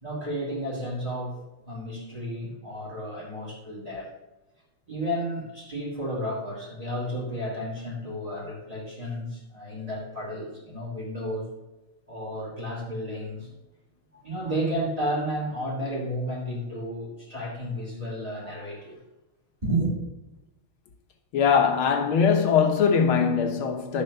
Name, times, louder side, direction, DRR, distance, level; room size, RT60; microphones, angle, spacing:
voice 1, 0.0-4.1 4.9-11.5 12.1-13.5 14.1-19.0 19.6-19.9, equal, 15° right, 2.8 m, -32 dB
voice 2, 21.3-24.0, left 6 dB, 85° left, 2.0 m, -21 dB
12.5 x 4.4 x 6.6 m
omnidirectional pair, 2.3 m